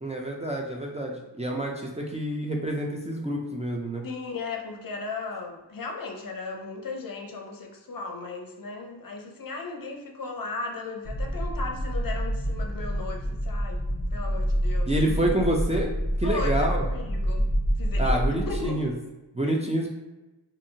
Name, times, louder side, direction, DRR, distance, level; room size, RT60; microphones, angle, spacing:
voice 1, 0.0-4.0 14.9-15.9 16.2-16.8 18.0-18.9 19.3-19.9, right 1 dB, 15° right, -1 dB, 0.4 m, -27 dB
voice 2, 4.0-13.8 14.1-15.2 16.2-18.9 19.4-19.6, left 3 dB, 50° left, 3 dB, 0.6 m, -36 dB
sound 1, 11.0-18.7, equal, 10° left, 0.8 m, -27 dB
2.7 x 2.6 x 2.6 m, 1.1 s
cardioid pair, 45°, 44 cm